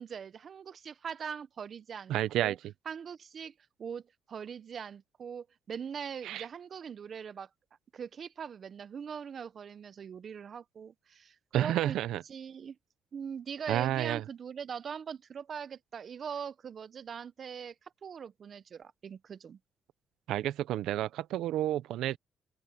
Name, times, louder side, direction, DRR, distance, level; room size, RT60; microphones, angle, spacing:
voice 1, 0.0-2.6 2.9-3.5 3.8-4.0 4.3-7.5 7.9-12.0 12.3-12.8 13.1-17.7 18.0-19.6, right 7 dB, 50° right, 0.8 m, -41 dB
voice 2, 2.1-2.7 6.2-6.4 11.5-12.2 13.7-14.2 20.3-22.2, right 13 dB, 85° right, 0.6 m, -30 dB
open air
cardioid pair, 90°, 0 cm